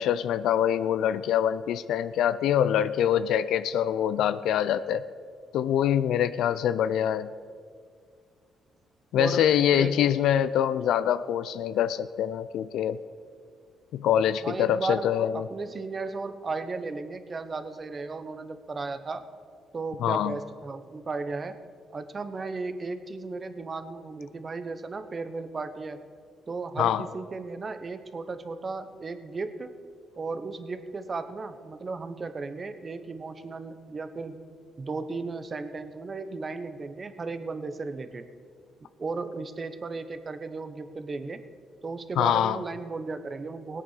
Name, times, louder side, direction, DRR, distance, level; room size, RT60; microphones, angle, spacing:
voice 1, 0.0-5.0 5.5-7.3 9.1-13.0 13.9-15.5 20.0-20.4 26.8-27.0 42.2-42.6, left 10 dB, 80° left, 14 dB, 0.4 m, -24 dB
voice 2, 9.1-9.5 9.7-9.9 14.4-19.2 19.7-21.6 21.9-26.0 26.5-29.7 30.1-34.4 34.8-38.3 38.8-41.4 41.8-43.8, right 3 dB, 35° right, 11 dB, 1.0 m, -35 dB
17.5 x 8.7 x 6.5 m, 2.1 s
cardioid pair, 90°, 0 cm